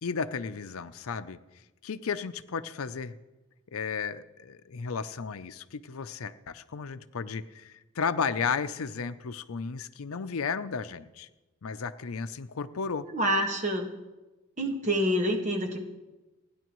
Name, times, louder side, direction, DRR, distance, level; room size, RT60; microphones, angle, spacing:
voice 1, 0.0-1.4 1.8-3.1 3.7-11.3 11.6-13.1, left 5 dB, 90° left, 12 dB, 0.6 m, -34 dB
voice 2, 13.0-13.9 14.6-15.8, equal, 35° right, 2 dB, 1.5 m, -27 dB
29.0 x 10.0 x 3.1 m, 1.1 s
head